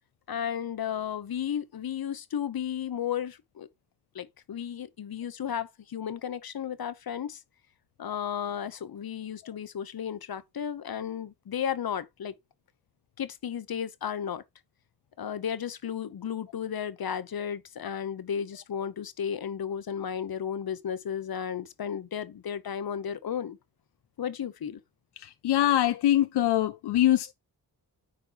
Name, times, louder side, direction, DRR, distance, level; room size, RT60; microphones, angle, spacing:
voice 1, 0.3-3.7 4.1-7.4 8.0-12.3 13.2-14.4 15.2-23.6 24.2-24.8, left 8 dB, 65° left, 1.0 m, -34 dB
voice 2, 25.4-27.3, left 13 dB, 90° left, 0.5 m, -23 dB
9.7 x 4.3 x 4.0 m
cardioid pair, 75°, 39 cm